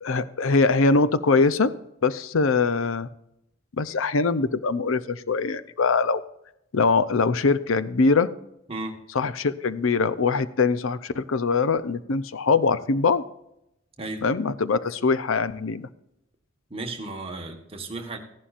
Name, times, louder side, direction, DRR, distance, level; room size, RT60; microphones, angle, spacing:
voice 1, 0.0-1.7 2.0-3.1 3.8-6.2 6.7-8.3 9.1-13.2 14.2-15.9, left 4 dB, 75° left, 15 dB, 0.6 m, -22 dB
voice 2, 16.7-18.2, right 2 dB, 25° right, 3 dB, 1.5 m, -34 dB
15.0 x 11.5 x 2.5 m, 0.81 s
head